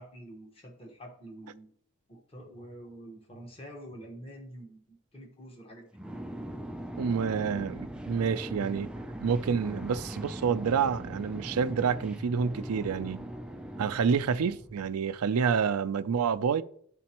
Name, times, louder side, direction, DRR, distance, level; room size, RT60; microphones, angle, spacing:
voice 1, 0.0-1.7 2.1-5.9, right 1 dB, 25° left, 1.2 m, -47 dB
sound 1, 5.9-14.9, right 1 dB, 5° right, 0.4 m, -40 dB
voice 2, 7.0-8.9 9.2-13.3 13.8-16.6, right 6 dB, 80° right, 0.4 m, -28 dB
11.5 x 4.2 x 2.9 m
head